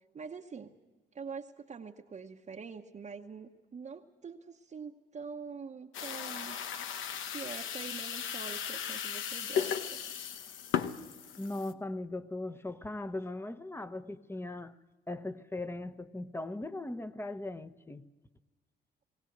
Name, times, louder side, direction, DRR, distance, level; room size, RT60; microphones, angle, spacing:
voice 1, 0.1-0.7 1.1-6.8 7.3-10.0, right 5 dB, 35° right, 1.0 m, -45 dB
sound 1, 5.9-11.7, left 8 dB, 85° left, 1.0 m, -36 dB
voice 2, 11.4-14.8 15.1-18.1, left 2 dB, 10° left, 0.9 m, -39 dB
20.5 x 17.0 x 7.9 m
cardioid pair, 90°, 20 cm